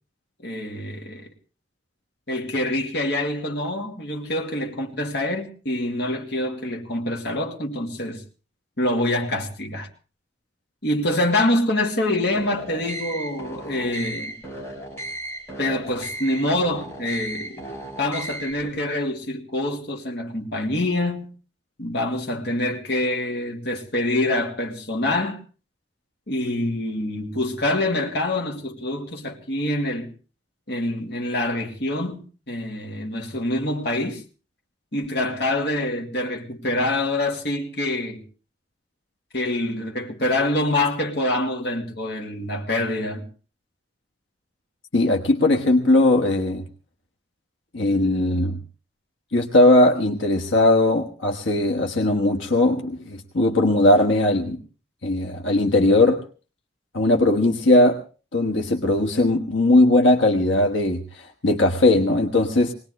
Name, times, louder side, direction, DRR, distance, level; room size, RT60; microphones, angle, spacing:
voice 1, 0.4-1.3 2.3-8.2 8.8-9.9 10.8-14.3 15.6-17.6 18.0-21.3 21.8-25.4 26.3-30.1 30.7-34.2 34.9-38.2 39.3-43.2, left 1 dB, 60° left, 2.5 m, -25 dB
sound 1, 12.3-18.7, right 1 dB, 15° left, 5.7 m, -35 dB
voice 2, 44.9-46.7 47.7-48.6 49.3-54.6 55.0-56.2 56.9-58.0 58.3-62.7, left 2 dB, 90° left, 1.4 m, -19 dB
21.0 x 19.0 x 3.2 m
head